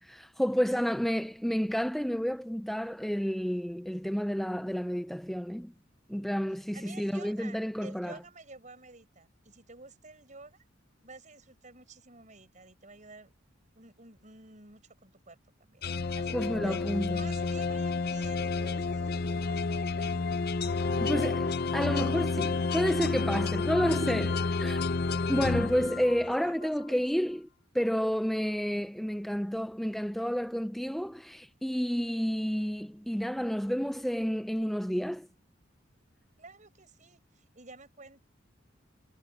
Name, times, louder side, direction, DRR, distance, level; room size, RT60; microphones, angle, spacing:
voice 1, 0.0-5.7 6.1-8.1 16.3-17.2 21.0-24.8 25.3-27.5 27.7-35.3, equal, ahead, 0.4 m, -30 dB
voice 2, 6.7-10.6 11.0-13.3 13.7-15.8 16.1-20.1 23.5-23.6 26.2-27.1 36.4-38.2, right 3 dB, 40° right, 6.8 m, -51 dB
sound 1, 15.8-26.5, left 4 dB, 50° left, 0.7 m, -30 dB
head